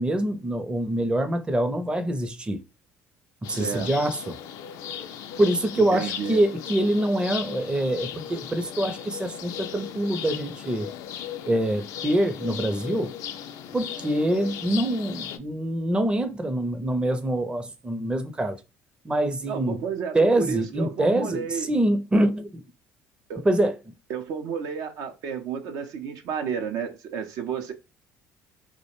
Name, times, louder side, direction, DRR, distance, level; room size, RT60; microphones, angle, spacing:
voice 1, 0.0-2.6 3.4-4.3 5.4-10.9 11.4-13.2 13.7-18.6 19.0-19.8 20.1-22.6 23.4-23.8, right 1 dB, 15° right, 0.5 m, -25 dB
sound 1, 3.4-15.4, left 9 dB, 70° left, 0.3 m, -37 dB
voice 2, 3.5-3.9 5.8-6.4 19.5-21.7 23.3-23.5 24.1-27.7, right 7 dB, 70° right, 0.5 m, -31 dB
2.4 x 2.1 x 2.9 m
supercardioid pair, 70°, 6 cm